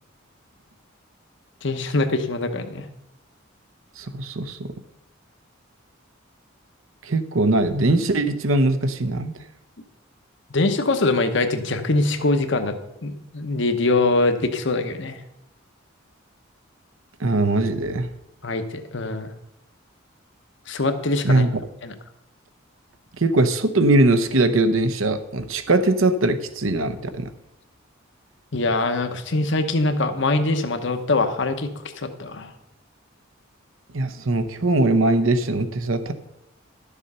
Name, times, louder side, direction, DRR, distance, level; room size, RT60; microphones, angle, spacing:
voice 1, 1.6-2.9 10.5-12.8 13.0-15.2 18.4-19.3 20.7-21.5 21.8-21.9 28.5-32.5, left 2 dB, 60° left, 8 dB, 1.0 m, -23 dB
voice 2, 4.0-4.7 7.0-9.3 17.2-18.1 21.2-21.5 23.2-27.3 33.9-36.1, right 2 dB, 75° right, 10 dB, 0.9 m, -21 dB
11.5 x 7.2 x 5.5 m, 0.87 s
head